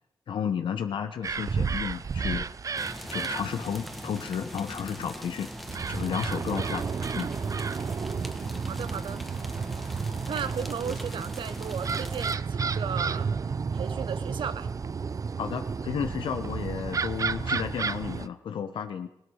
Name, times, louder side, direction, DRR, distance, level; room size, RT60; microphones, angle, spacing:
voice 1, 0.3-2.4 3.1-5.5 5.9-6.8 7.1-7.3 15.4-19.1, left 7 dB, 75° left, 8 dB, 0.9 m, -32 dB
sound 1, 1.2-18.3, right 5 dB, 40° right, 0.5 m, -32 dB
sound 2, 2.8-12.4, equal, ahead, 1.5 m, -42 dB
voice 2, 8.7-9.2 10.3-13.3 13.7-14.7, right 7 dB, 75° right, 13 dB, 0.9 m, -35 dB
16.5 x 13.0 x 6.4 m, 0.81 s
cardioid pair, 75°, 9 cm